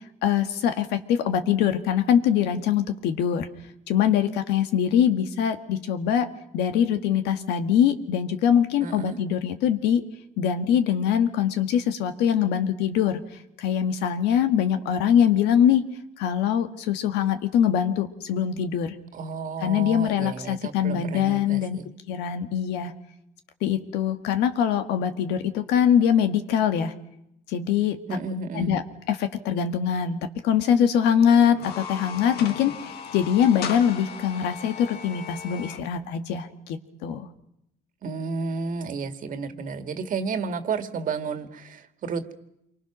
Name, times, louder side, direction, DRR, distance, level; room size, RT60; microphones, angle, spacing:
voice 1, 0.2-3.5 3.9-6.3 6.5-10.0 10.4-13.2 13.6-15.8 16.2-18.9 19.6-22.9 23.6-26.9 27.5-28.0 28.5-28.8 29.1-37.3, left 9 dB, 90° left, 8 dB, 1.8 m, -23 dB
voice 2, 8.8-9.2 19.1-21.9 28.1-28.8 38.0-42.3, right 4 dB, 50° right, 9 dB, 2.0 m, -32 dB
sound 1, 31.5-35.8, left 7 dB, 70° left, 1.8 m, -37 dB
27.5 x 24.0 x 6.2 m, 0.81 s
cardioid pair, 110°, 17 cm